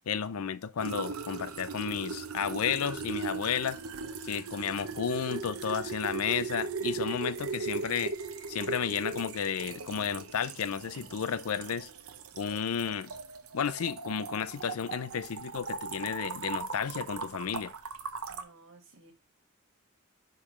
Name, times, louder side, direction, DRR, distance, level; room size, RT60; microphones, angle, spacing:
voice 1, 0.1-3.8 4.2-8.1 8.5-11.9 12.3-13.1 13.5-17.7, left 7 dB, 85° left, 0.5 m, -32 dB
sound 1, 0.8-18.4, right 4 dB, 80° right, 0.8 m, -38 dB
voice 2, 4.7-5.1 18.3-19.1, right 2 dB, 60° right, 1.7 m, -57 dB
10.0 x 3.8 x 3.1 m
head